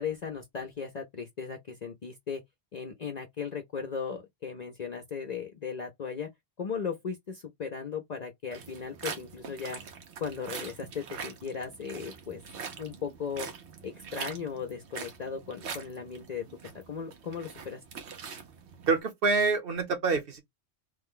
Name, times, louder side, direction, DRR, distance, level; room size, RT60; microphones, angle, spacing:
voice 1, 0.0-2.4 2.7-6.3 6.6-9.8 10.2-12.4 12.8-13.5 13.8-17.8, left 6 dB, 45° left, 0.6 m, -37 dB
sound 1, 8.5-19.0, right 6 dB, 75° right, 1.1 m, -43 dB
voice 2, 18.9-20.4, right 4 dB, 55° right, 1.2 m, -26 dB
3.1 x 2.2 x 3.6 m
omnidirectional pair, 1.1 m